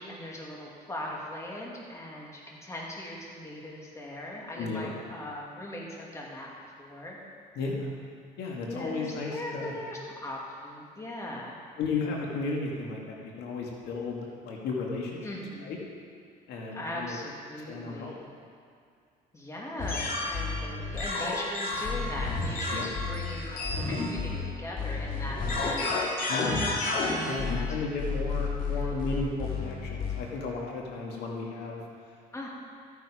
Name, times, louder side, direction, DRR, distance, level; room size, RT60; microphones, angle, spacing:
voice 1, 0.0-6.5 6.8-7.2 8.6-11.6 15.2-15.8 16.7-18.3 19.3-25.9 27.4-27.8 28.3-28.4 28.8-29.0 32.3-32.5, left 1 dB, 15° left, -3 dB, 2.3 m, -39 dB
voice 2, 4.6-4.9 7.6-7.9 8.4-9.7 11.8-15.2 15.6-15.8 16.5-17.1 17.7-18.2 22.7-22.9 26.3-26.6 27.3-31.8, left 3 dB, 75° left, -2 dB, 2.1 m, -34 dB
sound 1, 19.8-30.3, left 3 dB, 55° left, 2.4 m, -31 dB
14.0 x 9.3 x 5.0 m, 2.3 s
cardioid pair, 110°, 17 cm